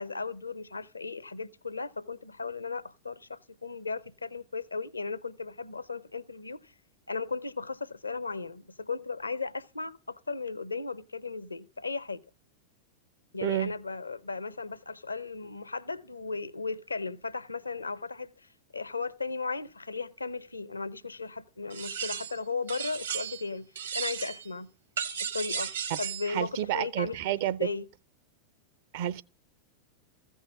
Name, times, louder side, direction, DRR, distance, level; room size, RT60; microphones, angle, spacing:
voice 1, 0.0-6.7 7.1-12.2 13.3-23.7 23.9-24.7 25.3-25.7 26.0-27.9, left 4 dB, 80° left, 0.6 m, -36 dB
sound 1, 21.7-22.4 22.7-23.5 23.7-24.5 25.0-26.3, right 7 dB, 70° right, 1.3 m, -35 dB
voice 2, 26.3-27.6 28.9-29.2, right 12 dB, 50° right, 0.5 m, -30 dB
15.0 x 5.5 x 7.2 m
figure-of-eight pair, 90°, 0 cm